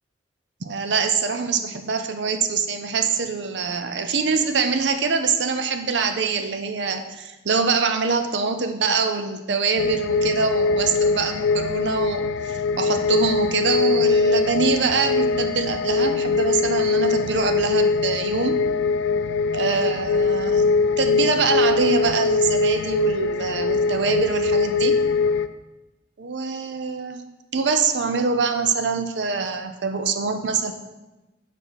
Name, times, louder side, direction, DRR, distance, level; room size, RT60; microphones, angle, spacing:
voice 1, 0.6-18.6 19.5-25.0 26.2-27.2 27.5-30.7, right 5 dB, 70° right, 7 dB, 0.6 m, -24 dB
sound 1, 9.8-25.5, left 4 dB, 85° left, 0.3 m, -22 dB
7.2 x 4.5 x 4.0 m, 1.1 s
head